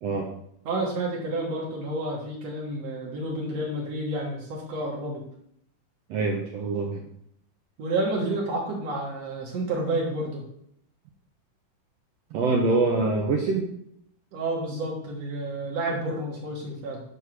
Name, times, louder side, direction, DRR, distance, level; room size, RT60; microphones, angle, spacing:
voice 1, 0.6-5.2 7.8-10.4 14.3-17.0, right 2 dB, 55° right, -2 dB, 2.4 m, -30 dB
voice 2, 6.1-7.0 12.3-13.7, right 3 dB, 75° right, 1 dB, 1.5 m, -25 dB
8.1 x 3.6 x 6.0 m, 0.70 s
omnidirectional pair, 3.9 m